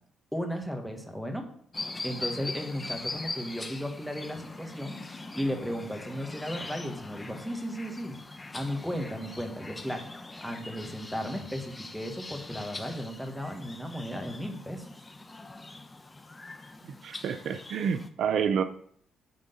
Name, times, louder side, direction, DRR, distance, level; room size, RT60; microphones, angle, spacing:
voice 1, 0.3-1.5 2.0-5.0 5.3-8.1 8.5-10.1 10.4-15.0, equal, ahead, 3 dB, 1.7 m, -35 dB
sound 1, 1.7-18.1, left 2 dB, 20° left, 0.8 m, -42 dB
voice 2, 16.8-18.6, right 7 dB, 70° right, 10 dB, 0.6 m, -29 dB
9.5 x 3.7 x 7.0 m, 0.62 s
cardioid pair, 90°, 0 cm